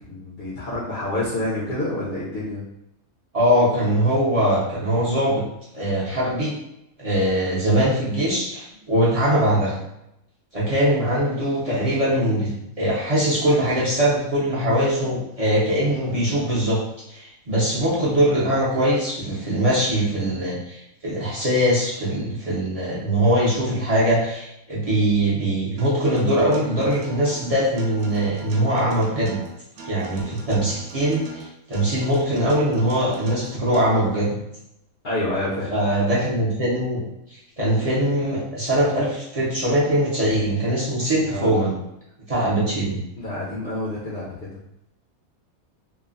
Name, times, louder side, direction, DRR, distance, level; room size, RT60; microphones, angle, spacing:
voice 1, 0.1-2.6 35.0-35.7 41.2-41.7 43.2-44.6, left 1 dB, 55° left, -7 dB, 0.8 m, -28 dB
voice 2, 3.3-5.4 5.7-6.5 7.0-9.7 10.5-16.8 17.1-29.4 29.9-34.4 35.7-37.0 37.3-41.8 42.3-43.0, right 1 dB, 35° right, -8 dB, 0.6 m, -22 dB
Acoustic guitar, 25.8-33.8, right 4 dB, 75° right, 1.0 m, -40 dB
3.1 x 2.1 x 2.4 m, 0.82 s
omnidirectional pair, 1.5 m